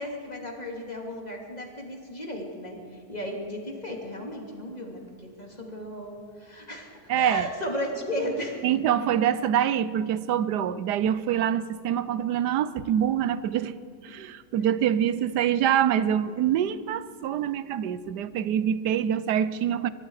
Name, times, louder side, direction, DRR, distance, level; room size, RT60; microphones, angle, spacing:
voice 1, 0.0-2.8 3.1-6.9 7.1-8.6, equal, 25° left, 0 dB, 3.0 m, -34 dB
voice 2, 7.1-7.5 8.6-13.7 14.0-19.9, right 9 dB, 90° right, 15 dB, 1.3 m, -25 dB
23.5 x 23.0 x 4.9 m, 2.2 s
omnidirectional pair, 1.7 m